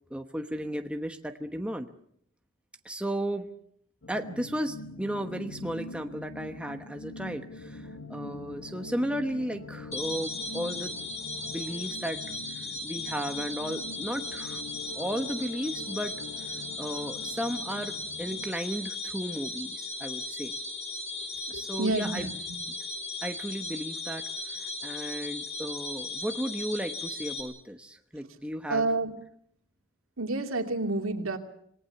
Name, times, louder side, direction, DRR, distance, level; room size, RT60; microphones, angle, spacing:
voice 1, 0.1-1.9 2.8-3.5 4.1-10.9 11.5-14.6 14.9-20.6 21.5-22.3 22.6-22.8 23.2-28.9, equal, 5° right, 6 dB, 1.1 m, -35 dB
sound 1, 4.0-18.5, left 2 dB, 70° left, 1.5 m, -44 dB
sound 2, 9.9-27.4, left 2 dB, 30° left, 4.8 m, -37 dB
voice 2, 21.5-22.3 28.7-29.1 30.2-31.4, right 2 dB, 70° right, 5 dB, 2.7 m, -29 dB
27.0 x 19.0 x 6.9 m, 0.69 s
head